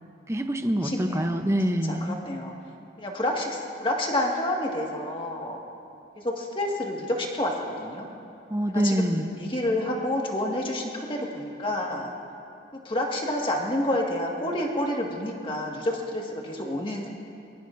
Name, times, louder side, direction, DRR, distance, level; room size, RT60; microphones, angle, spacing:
voice 1, 0.3-2.2 8.5-9.3, equal, 15° right, 7 dB, 0.6 m, -25 dB
voice 2, 0.8-1.4 1.8-2.5 3.0-5.6 6.2-8.1 8.7-12.1 12.9-17.1, left 1 dB, 30° left, 0 dB, 1.7 m, -29 dB
22.0 x 22.0 x 2.6 m, 2.7 s
head